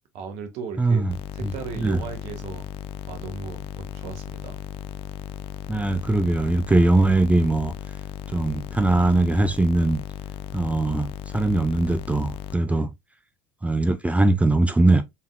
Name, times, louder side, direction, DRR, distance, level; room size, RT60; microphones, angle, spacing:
voice 1, 0.1-1.1 1.3-2.7 3.1-4.6 12.6-12.9, right 6 dB, 65° right, 1.3 m, -36 dB
voice 2, 0.8-1.1 1.4-1.5 1.8-2.0 5.7-7.7 8.3-10.0 10.5-12.9 13.6-15.0, right 2 dB, 10° right, 0.5 m, -21 dB
sound 1, 1.1-12.6, left 10 dB, 50° left, 0.5 m, -36 dB
4.5 x 3.6 x 2.4 m
hypercardioid pair, 75°, 12 cm